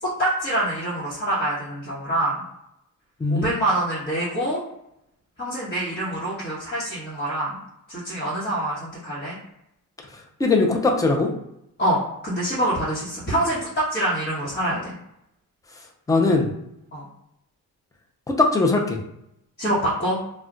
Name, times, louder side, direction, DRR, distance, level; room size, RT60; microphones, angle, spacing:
voice 1, 0.0-2.4 3.3-4.6 5.4-7.6 7.9-9.4 11.8-14.9 16.9-17.1 19.6-20.2, right 1 dB, 30° left, -10 dB, 1.0 m, -25 dB
voice 2, 3.2-3.5 10.4-11.3 16.1-16.5 18.3-19.0, left 3 dB, 10° left, 1 dB, 0.4 m, -20 dB
2.3 x 2.1 x 3.7 m, 0.81 s
cardioid pair, 140°, 33 cm